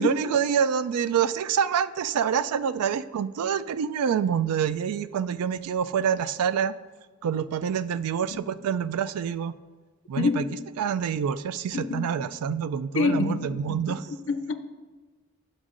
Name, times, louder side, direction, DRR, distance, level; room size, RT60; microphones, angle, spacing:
voice 1, 0.0-6.7 7.2-9.5 10.1-14.1, right 7 dB, 90° right, 15 dB, 0.3 m, -27 dB
voice 2, 11.7-12.1 12.9-13.8 14.1-14.5, left 4 dB, 55° left, 9 dB, 0.5 m, -26 dB
11.0 x 6.2 x 2.5 m, 1.3 s
head